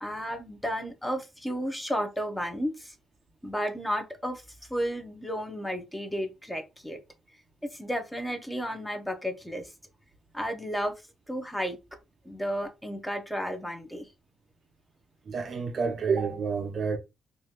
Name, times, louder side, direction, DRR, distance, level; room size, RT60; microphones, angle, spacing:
voice 1, 0.0-3.0 3.4-7.0 7.6-9.7 10.3-10.9 11.3-11.8 12.2-14.1, equal, 5° left, 0.8 m, -33 dB
voice 2, 15.3-17.0, right 5 dB, 50° right, 0.5 m, -29 dB
3.0 x 2.4 x 2.8 m
cardioid pair, 90°, 0 cm